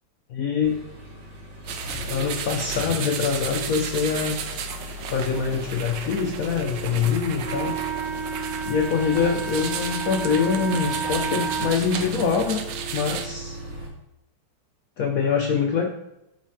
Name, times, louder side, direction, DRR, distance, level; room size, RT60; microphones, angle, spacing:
voice 1, 0.3-0.8 2.0-4.4 5.1-7.7 8.7-12.6 12.9-13.6 15.0-15.9, left 6 dB, 80° left, 3 dB, 0.7 m, -24 dB
Accelerating revving vroom, 0.6-13.9, equal, 90° right, 3.2 m, -37 dB
sound 1, 1.7-13.3, right 7 dB, 70° right, 1.2 m, -34 dB
Wind instrument woodwind instrument, 7.4-11.8, right 5 dB, 30° right, 1.6 m, -31 dB
8.4 x 4.2 x 4.8 m, 0.85 s
omnidirectional pair, 2.3 m